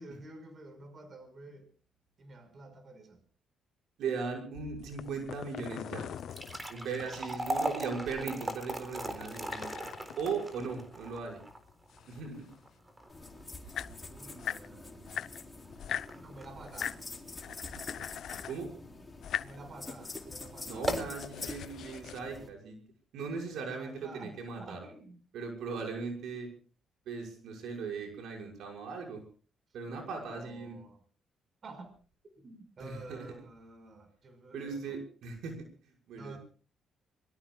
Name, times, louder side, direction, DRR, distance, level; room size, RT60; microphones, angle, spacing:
voice 1, 0.0-1.7 2.2-3.2 6.7-7.4 14.1-15.2 16.1-17.0 19.3-20.9 23.5-25.2 29.8-31.0 31.6-31.9 32.4-35.0 36.1-36.4, right 2 dB, 45° right, 8 dB, 5.6 m, -50 dB
voice 2, 4.0-6.1 6.7-9.7 10.2-11.4 12.1-12.5 18.4-18.7 20.7-22.8 23.1-24.8 25.3-26.5 27.1-29.2 29.7-30.8 32.8-33.2 34.5-36.4, right 5 dB, 75° right, 1 dB, 6.1 m, -38 dB
sound 1, 4.8-7.3 9.1-11.2 11.5-12.7 13.3-13.4 13.6-14.7 15.1-16.1 16.6-17.0 17.4-18.6 19.1-19.6 20.1-22.2, left 9 dB, 70° left, 0.7 m, -41 dB
sound 2, 6.1-18.4 18.8-18.9 19.6-19.8 20.1-20.2 20.7-21.2, right 1 dB, 15° right, 3.8 m, -39 dB
sound 3, 13.1-22.5, left 3 dB, 20° left, 4.1 m, -46 dB
26.0 x 23.0 x 2.4 m, 0.39 s
cardioid pair, 90°, 0 cm